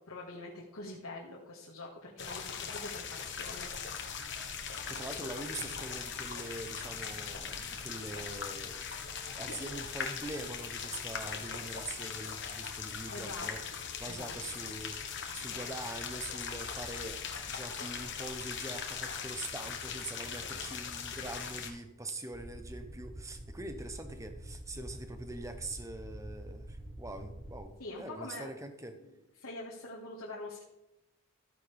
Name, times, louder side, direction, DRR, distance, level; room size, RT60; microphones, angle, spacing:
voice 1, 0.1-4.1 4.9-5.2 13.1-13.5 14.1-14.3 27.8-28.5 28.9-29.1 29.4-30.6, left 2 dB, 85° left, -5 dB, 1.8 m, -45 dB
sound 1, 2.2-21.7, left 6 dB, 50° left, 1.2 m, -40 dB
voice 2, 4.9-8.8 9.3-13.6 14.0-29.0, right 2 dB, 15° right, 8 dB, 0.8 m, -43 dB
sound 2, 22.3-27.6, right 1 dB, 35° right, 1.2 m, -46 dB
14.0 x 9.1 x 3.4 m, 0.96 s
head